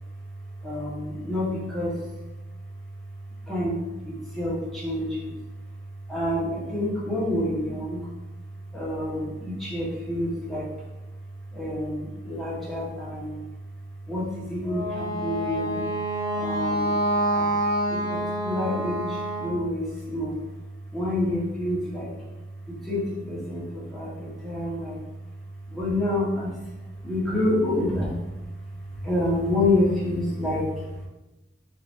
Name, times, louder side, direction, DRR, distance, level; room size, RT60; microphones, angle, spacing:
voice 1, 0.6-2.0 3.5-3.8 4.0-5.3 6.1-8.0 8.7-10.7 11.5-13.4 14.1-15.8 16.3-17.0 17.3-17.5 17.9-20.4 20.9-22.1 22.7-25.0 25.7-26.5 27.0-28.2 29.0-30.8, left 1 dB, ahead, -8 dB, 1.2 m, -28 dB
Wind instrument woodwind instrument, 14.6-19.6, right 1 dB, 20° left, 0.7 m, -27 dB
3.6 x 2.8 x 3.9 m, 1.0 s
head